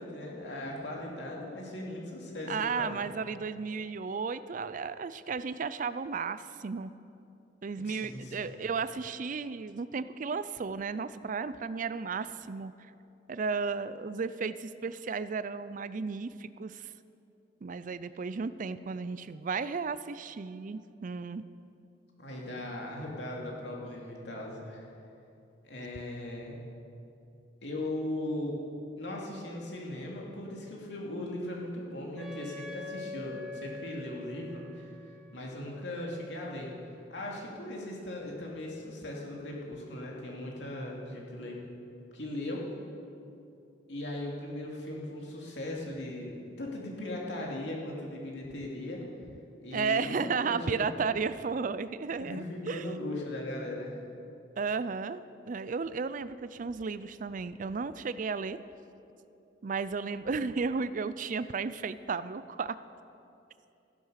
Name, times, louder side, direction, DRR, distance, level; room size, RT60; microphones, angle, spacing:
voice 1, 0.0-2.9 7.8-8.5 22.2-24.8 25.6-26.6 27.6-28.6 29.0-34.9 35.3-36.7 37.1-41.6 42.1-42.7 43.9-49.0 49.6-50.8 52.2-54.0, left 1 dB, 75° left, -2 dB, 2.8 m, -38 dB
voice 2, 2.5-6.9 7.6-12.7 13.3-16.9 17.6-21.4 49.7-52.9 54.6-58.6 59.6-62.8, right 5 dB, 45° right, 14 dB, 0.4 m, -34 dB
Wind instrument woodwind instrument, 32.1-37.8, left 2 dB, ahead, 1.8 m, -46 dB
15.0 x 10.5 x 6.5 m, 2.7 s
head